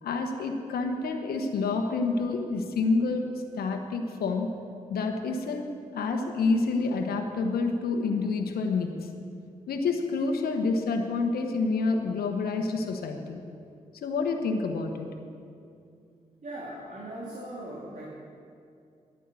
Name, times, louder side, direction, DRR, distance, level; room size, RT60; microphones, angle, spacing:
voice 1, 0.0-3.3 3.6-4.5 4.9-9.1 9.7-13.4 13.9-15.1, left 3 dB, 80° left, 4 dB, 1.1 m, -28 dB
voice 2, 16.4-18.0, right 1 dB, 55° right, -5 dB, 2.9 m, -39 dB
11.0 x 9.4 x 8.3 m, 2.5 s
supercardioid pair, 45°, 16 cm